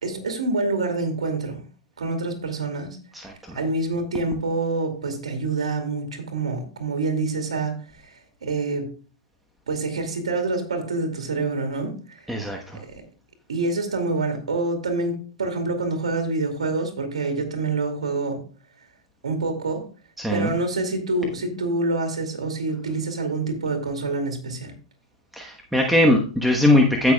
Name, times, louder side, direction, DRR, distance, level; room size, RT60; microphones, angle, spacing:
voice 1, 0.0-1.6 2.0-3.0 3.5-7.7 8.0-8.1 8.4-8.9 9.7-12.2 13.5-18.4 19.2-19.9 20.3-24.7, right 3 dB, 80° right, 2.3 m, -26 dB
voice 2, 3.1-3.6 12.3-12.8 20.2-20.5 25.3-27.1, left 1 dB, 5° right, 1.1 m, -20 dB
16.0 x 6.0 x 2.3 m
hypercardioid pair, 105°, 3 cm